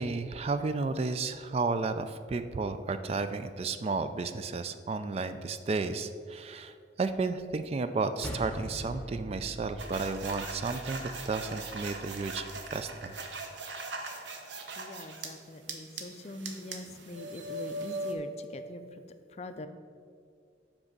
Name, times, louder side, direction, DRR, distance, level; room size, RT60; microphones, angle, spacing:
voice 1, 0.0-13.1, right 3 dB, 35° right, 10 dB, 0.3 m, -33 dB
sound 1, 8.2-12.9, equal, 5° left, 0.8 m, -43 dB
sound 2, 9.8-15.3 15.7-18.1, right 2 dB, 75° right, 0.9 m, -40 dB
voice 2, 14.8-18.8 19.4-19.7, left 2 dB, 35° left, 9 dB, 0.4 m, -43 dB
6.1 x 5.1 x 6.6 m, 2.1 s
head